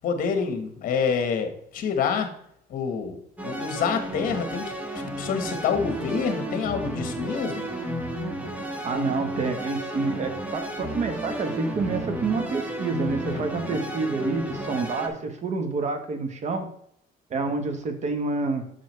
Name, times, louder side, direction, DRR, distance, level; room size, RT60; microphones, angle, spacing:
voice 1, 0.0-2.3 2.7-3.2 3.4-4.7 5.2-7.7 13.3-13.8, left 6 dB, 55° left, 7 dB, 1.4 m, -27 dB
sound 1, 3.4-15.1, right 1 dB, 10° right, 1.3 m, -33 dB
voice 2, 8.8-16.7 17.3-18.6, right 3 dB, 45° right, 7 dB, 1.4 m, -28 dB
8.2 x 6.2 x 3.3 m, 0.69 s
cardioid pair, 125°, 17 cm